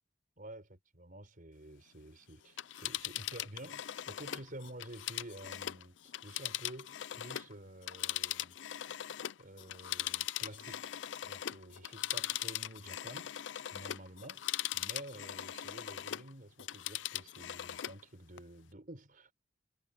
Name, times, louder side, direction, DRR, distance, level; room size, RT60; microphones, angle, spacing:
voice 1, 0.4-8.6 9.4-10.9 11.2-13.3 13.7-14.4 14.7-19.3, right 1 dB, 50° right, 4.7 m, -50 dB
Telephone, 2.4-7.5 7.8-16.3 16.6-18.0 18.4-18.5, left 12 dB, 75° left, 0.5 m, -40 dB
head